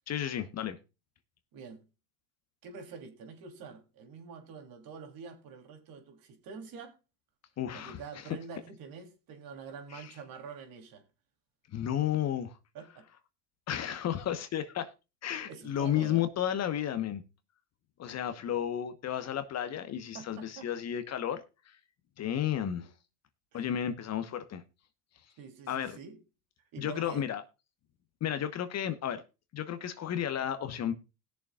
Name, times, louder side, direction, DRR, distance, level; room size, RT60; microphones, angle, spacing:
voice 1, 0.1-0.8 7.6-8.4 9.9-10.1 11.7-12.5 13.7-14.9 15.2-17.2 18.0-21.8 22.2-22.9 23.5-24.6 25.7-26.0 26.8-27.4 28.2-29.2 29.5-30.9, left 10 dB, 35° left, 1.1 m, -33 dB
voice 2, 2.6-6.9 7.7-11.0 12.7-13.0 15.5-16.2 20.1-20.7 23.5-23.6 25.4-26.2 26.7-27.2, right 5 dB, 45° right, 3.2 m, -46 dB
20.0 x 7.0 x 2.4 m
supercardioid pair, 115°, 46 cm